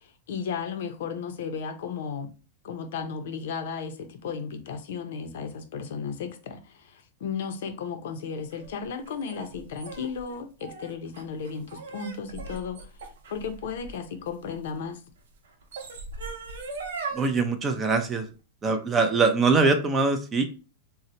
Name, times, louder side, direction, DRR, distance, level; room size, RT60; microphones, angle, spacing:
voice 1, 0.3-2.3 2.6-12.9 13.3-15.0, left 6 dB, 70° left, 0.5 m, -34 dB
sound 1, 8.5-14.7 15.5-17.3, right 4 dB, 90° right, 0.7 m, -39 dB
voice 2, 17.1-18.3 18.6-20.5, right 4 dB, 15° right, 0.4 m, -23 dB
2.7 x 2.1 x 4.0 m
supercardioid pair, 160°, 0 cm